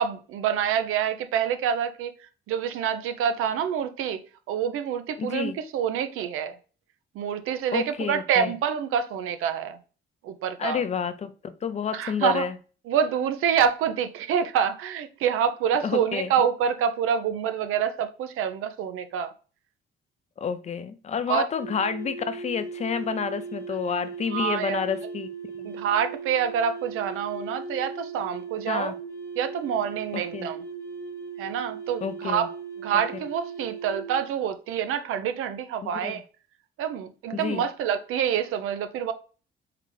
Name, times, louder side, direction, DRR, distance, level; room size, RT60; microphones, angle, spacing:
voice 1, 0.0-2.1 2.5-4.2 4.5-6.6 7.2-9.8 10.2-10.8 11.9-12.4 12.9-19.3 21.3-21.4 24.3-24.8 25.6-28.9 29.4-30.6 31.4-32.5 32.8-36.2 36.8-39.1, right 8 dB, 90° right, 0.5 m, -27 dB
voice 2, 5.2-5.6 7.7-8.5 10.6-11.3 11.6-12.6 15.8-16.3 20.4-25.3 25.6-25.7 28.7-28.9 30.1-30.5 32.0-32.5 33.1-33.2 35.9-36.2 37.3-37.7, left 6 dB, 35° left, 0.4 m, -29 dB
sound 1, 21.5-34.2, right 5 dB, 15° left, 0.9 m, -38 dB
3.8 x 3.3 x 3.1 m
cardioid pair, 135°, 21 cm